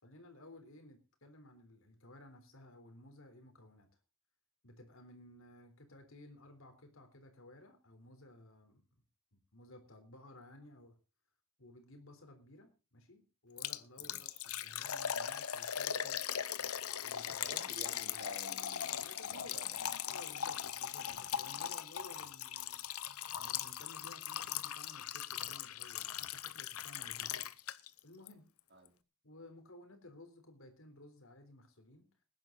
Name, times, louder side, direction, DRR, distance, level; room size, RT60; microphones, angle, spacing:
voice 1, 0.0-3.9 4.6-8.8 9.3-11.0 11.6-16.3 17.0-17.5 18.4-19.6 20.1-22.9 23.4-27.6 28.0-28.5 29.2-32.1, left 1 dB, 65° left, 6 dB, 3.7 m, -56 dB
Liquid, 13.6-28.0 28.3-28.4 28.9-29.0, left 9 dB, 90° left, 0.9 m, -39 dB
voice 2, 14.0-14.4 17.3-19.8 28.7-29.0, right 2 dB, 50° right, 4 dB, 3.9 m, -53 dB
20.0 x 10.5 x 3.9 m, 0.32 s
head